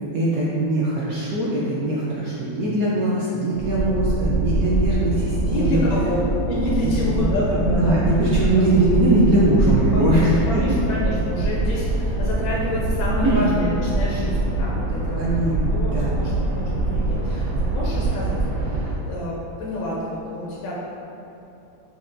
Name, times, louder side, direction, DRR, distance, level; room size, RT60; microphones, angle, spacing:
voice 1, 0.1-5.8 6.8-6.9 7.5-10.6 13.2-13.5 15.2-16.2, right 1 dB, 75° right, -7 dB, 0.8 m, -21 dB
sound 1, 3.6-18.9, right 2 dB, 90° right, 1.3 m, -24 dB
voice 2, 5.5-6.2 6.4-7.9 8.5-8.6 9.9-15.2 15.7-20.8, left 1 dB, 75° left, -5 dB, 1.2 m, -28 dB
6.3 x 2.2 x 2.5 m, 2.8 s
omnidirectional pair, 2.0 m